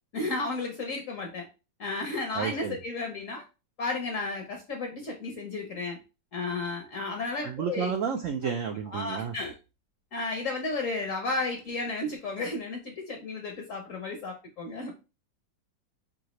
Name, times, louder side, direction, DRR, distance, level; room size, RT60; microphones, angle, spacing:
voice 1, 0.1-1.5 1.8-3.4 3.8-6.0 6.3-7.9 8.9-9.5 10.1-14.9, left 3 dB, 60° left, 2 dB, 0.9 m, -33 dB
voice 2, 2.3-2.8 7.4-9.3, right 7 dB, 85° right, 4 dB, 0.7 m, -31 dB
5.0 x 2.8 x 3.0 m, 0.30 s
omnidirectional pair, 2.0 m